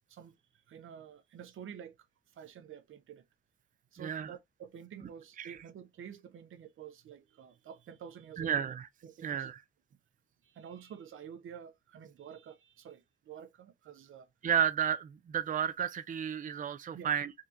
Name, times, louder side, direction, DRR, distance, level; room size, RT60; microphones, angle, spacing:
voice 1, 0.1-2.0 2.3-3.2 3.9-8.6 9.0-9.5 10.4-14.3 16.9-17.1, right 8 dB, 85° right, 0.7 m, -49 dB
voice 2, 4.0-4.3 5.4-5.5 8.4-8.8 9.2-9.6 14.4-17.3, right 8 dB, 40° right, 0.4 m, -32 dB
3.6 x 2.8 x 3.7 m
cardioid pair, 80°, 20 cm